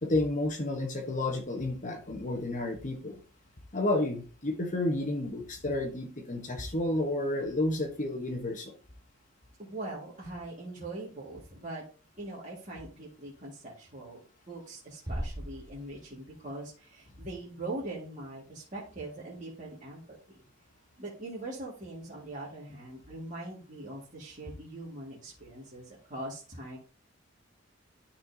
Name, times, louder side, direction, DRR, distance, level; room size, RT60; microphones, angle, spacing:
voice 1, 0.0-3.2 3.7-8.7, left 2 dB, 40° left, 3 dB, 1.1 m, -31 dB
voice 2, 9.6-11.8 12.2-14.2 14.5-20.0 20.3-20.4 21.0-26.8, right 2 dB, 40° right, -6 dB, 2.0 m, -42 dB
sound 1, 15.1-16.5, equal, 20° right, 1.4 m, -38 dB
12.5 x 4.3 x 2.8 m, 0.38 s
head